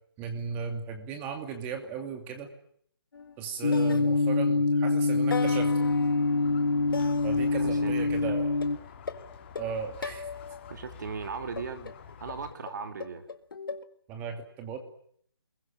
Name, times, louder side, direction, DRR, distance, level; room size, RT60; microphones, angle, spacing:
voice 1, 0.2-2.5 3.4-5.9 7.2-8.5 9.6-10.3 14.1-14.8, right 6 dB, 15° right, 5 dB, 2.7 m, -36 dB
sound 1, 3.1-3.4 3.7-4.8 5.3-8.1 8.6-10.8 11.6-13.8, left 5 dB, 55° left, 1.9 m, -39 dB
sound 2, 3.6-8.8, left 3 dB, 80° left, 1.7 m, -25 dB
Squeak, 5.4-12.5, left 7 dB, 25° left, 2.8 m, -48 dB
voice 2, 7.5-8.0 10.7-11.9 12.2-13.3, right 5 dB, 45° right, 7 dB, 3.7 m, -38 dB
29.5 x 22.0 x 7.6 m, 0.64 s
hypercardioid pair, 165°, 13 cm